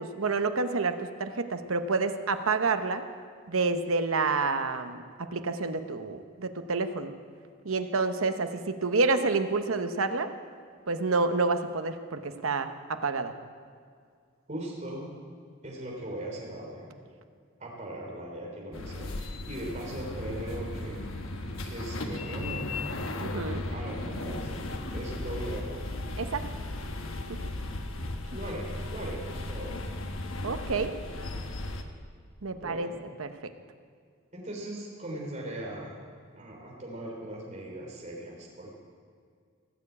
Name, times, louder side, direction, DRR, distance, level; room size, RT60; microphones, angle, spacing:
voice 1, 0.0-3.0 3.5-7.1 7.6-10.3 10.9-13.3 23.2-23.6 26.2-26.4 27.3-27.4 30.4-30.9 32.4-32.9 33.2-33.5, right 3 dB, 85° right, 8 dB, 0.9 m, -28 dB
voice 2, 14.5-15.1 15.6-16.9 17.6-21.0 21.7-22.8 23.7-24.5 24.9-25.9 28.3-29.9 32.5-33.0 34.3-36.0 36.4-38.7, right 1 dB, 35° right, -2 dB, 3.6 m, -39 dB
sound 1, 18.7-31.8, left 2 dB, 75° left, 1.2 m, -36 dB
18.0 x 7.0 x 8.5 m, 2.1 s
head